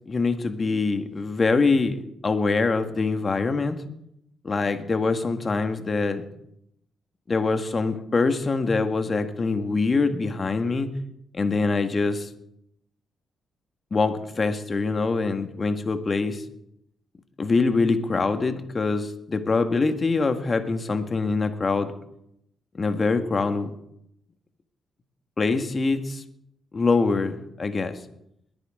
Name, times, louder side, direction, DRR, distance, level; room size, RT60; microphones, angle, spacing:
voice 1, 0.1-3.8 4.4-6.2 7.3-10.9 11.3-12.3 13.9-16.4 17.4-21.9 22.8-23.7 25.4-26.2 26.7-28.0, left 3 dB, 45° left, 7 dB, 1.9 m, -24 dB
21.5 x 9.8 x 3.8 m, 0.76 s
hypercardioid pair, 45°, 0 cm